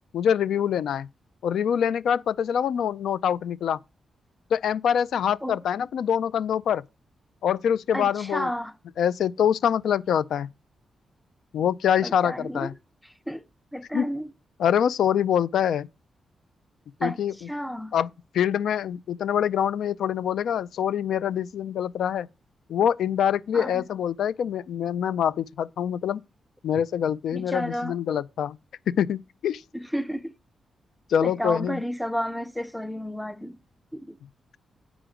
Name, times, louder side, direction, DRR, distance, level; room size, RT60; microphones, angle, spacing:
voice 1, 0.1-1.1 1.4-3.8 4.5-6.8 7.4-8.5 9.0-10.5 11.5-12.7 13.9-14.1 14.6-15.9 17.0-17.3 17.9-18.1 18.3-22.3 22.7-26.2 26.6-28.6 28.9-29.6 31.1-31.8, left 9 dB, 85° left, 0.4 m, -25 dB
voice 2, 7.9-8.7 12.0-12.7 13.3-13.4 13.7-14.3 17.0-17.2 17.5-17.9 23.5-23.8 27.3-28.0 29.7-30.3 31.2-33.6 33.9-34.2, equal, 5° left, 0.4 m, -31 dB
9.1 x 4.9 x 5.0 m
wide cardioid pair, 160°, 0 cm